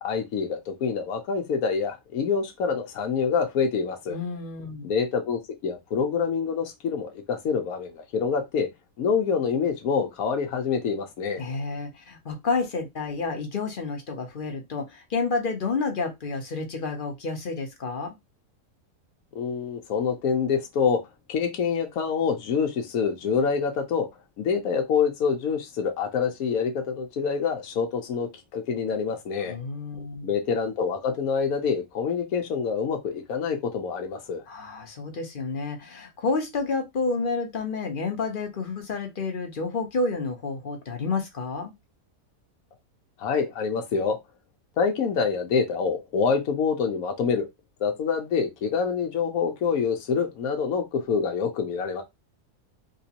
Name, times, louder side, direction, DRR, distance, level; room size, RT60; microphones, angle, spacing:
voice 1, 0.0-4.2 4.8-8.7 9.0-11.4 19.3-21.0 21.3-24.1 24.4-29.6 30.2-34.4 43.2-44.2 44.8-47.5 47.8-52.0, left 6 dB, 75° left, 1.2 m, -26 dB
voice 2, 4.1-4.9 11.4-18.2 29.4-30.3 34.5-41.7, left 3 dB, 45° left, 0.8 m, -30 dB
3.7 x 3.1 x 2.8 m
omnidirectional pair, 1.5 m